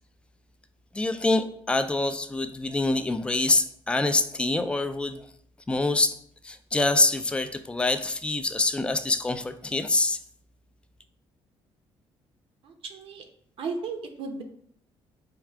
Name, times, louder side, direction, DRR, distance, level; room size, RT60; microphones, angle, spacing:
voice 1, 0.9-5.3 5.7-6.2 6.4-10.2, left 2 dB, 10° left, 9 dB, 0.3 m, -25 dB
voice 2, 12.6-13.2 13.6-14.4, right 4 dB, 65° right, 4 dB, 0.7 m, -35 dB
4.6 x 2.4 x 3.4 m, 0.65 s
cardioid pair, 95°, 10 cm